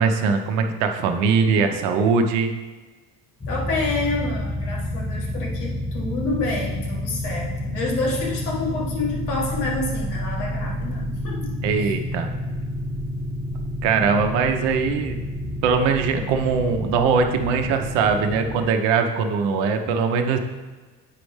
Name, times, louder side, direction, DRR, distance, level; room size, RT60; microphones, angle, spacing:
voice 1, 0.0-2.5 11.6-12.3 13.8-15.2 15.6-20.4, right 5 dB, 65° right, 6 dB, 0.9 m, -21 dB
sound 1, 3.4-18.7, left 1 dB, 10° left, 0.9 m, -29 dB
voice 2, 3.5-11.9, left 2 dB, 80° left, -2 dB, 1.6 m, -28 dB
8.4 x 5.1 x 3.2 m, 1.3 s
hypercardioid pair, 60°, 47 cm